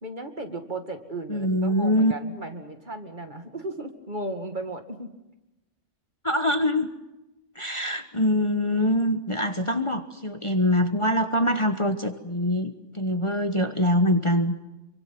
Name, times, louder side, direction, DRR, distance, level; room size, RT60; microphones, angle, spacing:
voice 1, 0.0-5.1, right 2 dB, 40° right, 6 dB, 2.4 m, -35 dB
voice 2, 1.3-2.1 6.2-6.9 7.5-14.5, left 1 dB, 25° left, 7 dB, 1.3 m, -24 dB
26.5 x 24.5 x 6.0 m, 1.0 s
omnidirectional pair, 1.2 m